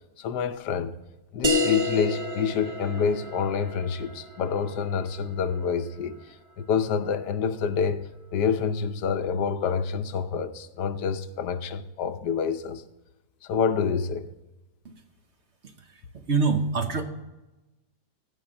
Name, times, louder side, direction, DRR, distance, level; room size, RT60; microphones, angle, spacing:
voice 1, 0.2-1.0 1.3-6.2 6.6-12.8 13.4-14.3, left 6 dB, 85° left, 1.3 m, -27 dB
sound 1, 1.4-6.5, left 2 dB, 30° right, 0.7 m, -31 dB
voice 2, 15.8-17.0, right 4 dB, 50° right, 1.2 m, -26 dB
15.5 x 5.7 x 8.6 m
omnidirectional pair, 1.7 m